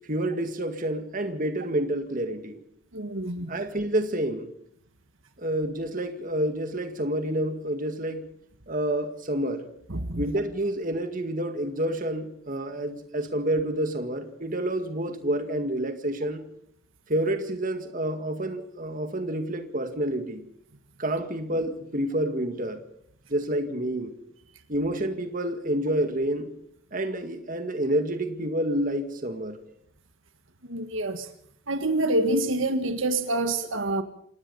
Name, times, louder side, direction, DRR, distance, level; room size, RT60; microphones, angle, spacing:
voice 1, 0.1-2.6 3.5-4.5 5.4-8.3 8.7-9.7 10.2-16.4 17.1-20.4 21.0-22.8 23.3-24.1 24.7-26.5 26.9-29.6, right 1 dB, 40° right, 2.0 m, -28 dB
voice 2, 2.9-3.5 9.9-10.2 30.7-31.3 31.7-34.0, right 2 dB, 65° right, 1.7 m, -26 dB
27.5 x 17.5 x 5.5 m
head